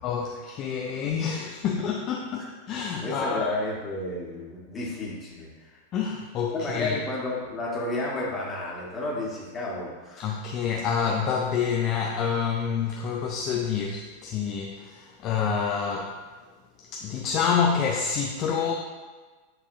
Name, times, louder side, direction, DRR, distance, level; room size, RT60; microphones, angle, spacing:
voice 1, 0.0-3.5 5.9-6.9 10.2-16.2 16.9-18.7, left 6 dB, 35° left, -1 dB, 0.5 m, -27 dB
voice 2, 3.0-5.8 6.5-10.4, left 2 dB, 20° left, -4 dB, 1.6 m, -32 dB
8.9 x 4.0 x 2.7 m, 1.4 s
figure-of-eight pair, 90°, 0 cm